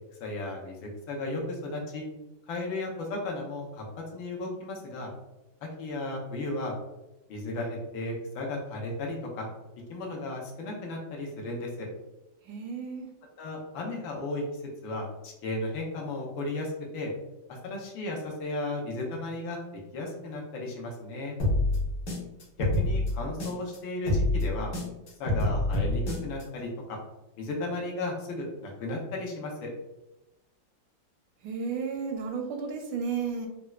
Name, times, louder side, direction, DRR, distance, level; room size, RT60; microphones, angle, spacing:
voice 1, 0.2-2.1 2.5-3.8 4.1-5.1 5.8-6.7 7.3-9.5 9.9-11.9 13.4-14.4 14.8-17.1 17.6-19.6 19.9-21.4 22.6-24.7 25.2-27.0 27.4-29.7, left 2 dB, 85° left, -1 dB, 1.5 m, -34 dB
voice 2, 12.4-13.1 31.4-33.5, right 5 dB, 80° right, 3 dB, 1.3 m, -33 dB
sound 1, 21.4-23.8 24.1-26.4, left 1 dB, 65° left, 1.6 m, -27 dB
4.4 x 2.0 x 2.3 m, 0.96 s
omnidirectional pair, 2.1 m